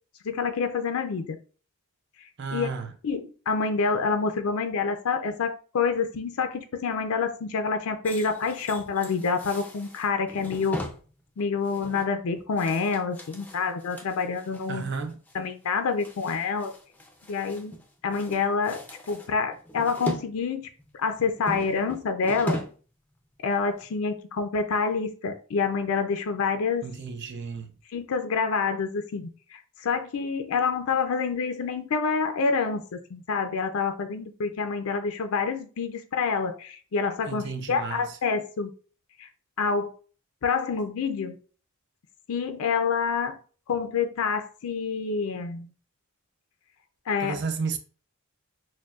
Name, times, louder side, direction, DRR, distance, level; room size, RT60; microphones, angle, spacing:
voice 1, 0.2-1.4 2.5-2.7 3.0-10.8 11.4-14.8 15.3-16.7 17.3-17.7 18.0-18.8 19.1-20.7 21.0-22.6 23.4-26.9 27.9-38.7 39.2-39.3 39.6-40.0 40.4-41.3 42.3-43.4 43.7-45.7 47.1-47.4, left 5 dB, 70° left, 0.4 m, -27 dB
voice 2, 2.4-2.9 14.7-15.1 26.8-27.8 37.3-38.2 47.2-47.8, right 5 dB, 50° right, 0.5 m, -33 dB
sound 1, 8.0-14.7 15.1-15.4 15.6-17.8 18.1-20.3 20.6-22.9 23.2-23.3 23.8-23.9, left 1 dB, 10° left, 0.4 m, -38 dB
6.2 x 2.1 x 2.3 m
head